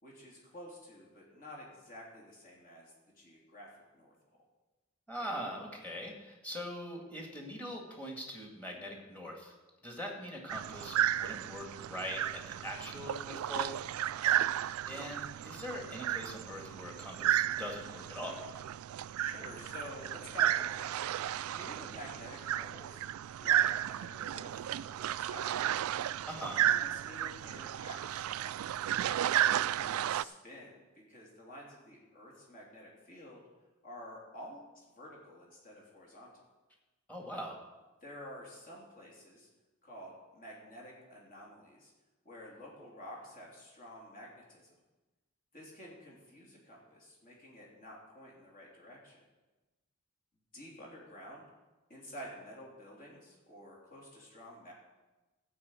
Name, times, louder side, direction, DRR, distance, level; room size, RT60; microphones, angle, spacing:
voice 1, 0.0-3.7 3.9-4.2 9.9-10.0 14.1-14.3 19.1-23.0 23.4-23.7 24.0-25.9 26.4-28.8 29.3-33.4 33.8-36.3 38.0-39.5 39.8-41.9 42.2-44.7 45.5-49.2 50.5-51.5 51.9-54.7, equal, 40° left, -3 dB, 3.4 m, -50 dB
voice 2, 5.1-9.6 9.8-13.8 14.1-14.3 14.9-18.4 26.3-26.7 37.1-37.6, equal, 10° left, 0 dB, 2.2 m, -42 dB
sound 1, 10.5-30.2, right 11 dB, 85° right, 0.3 m, -33 dB
13.5 x 5.7 x 8.4 m, 1.1 s
head